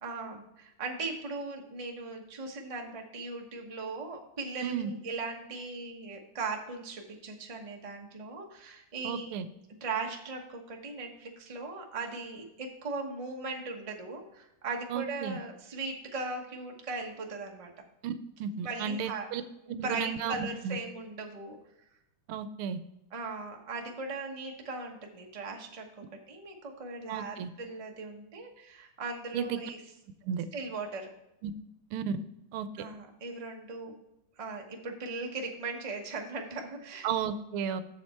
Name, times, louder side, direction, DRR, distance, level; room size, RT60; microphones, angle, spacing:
voice 1, 0.0-9.4 9.8-17.8 18.6-19.3 19.7-21.6 23.1-29.8 30.5-31.1 32.8-33.9 34.4-37.1, right 3 dB, 25° right, 1 dB, 0.8 m, -38 dB
voice 2, 9.0-9.4 14.9-15.4 18.0-18.1 18.4-19.4 19.7-20.8 22.3-22.8 27.1-27.5 29.3-29.6 30.3-30.4 31.4-31.5 31.9-32.2 32.5-32.7 37.0-37.8, right 7 dB, 80° right, 12 dB, 1.5 m, -33 dB
7.4 x 7.2 x 4.3 m, 0.86 s
omnidirectional pair, 2.4 m